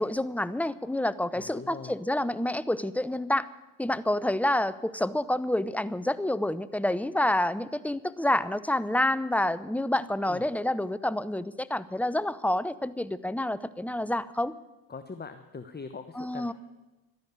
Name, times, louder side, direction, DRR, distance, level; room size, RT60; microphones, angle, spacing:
voice 1, 0.0-3.5 3.8-14.5 16.1-16.5, left 1 dB, 5° left, 16 dB, 0.7 m, -28 dB
voice 2, 1.3-1.9 10.3-10.5 14.9-16.5, left 4 dB, 20° left, 9 dB, 1.1 m, -42 dB
12.5 x 10.5 x 9.7 m, 1.1 s
hypercardioid pair, 55°, 46 cm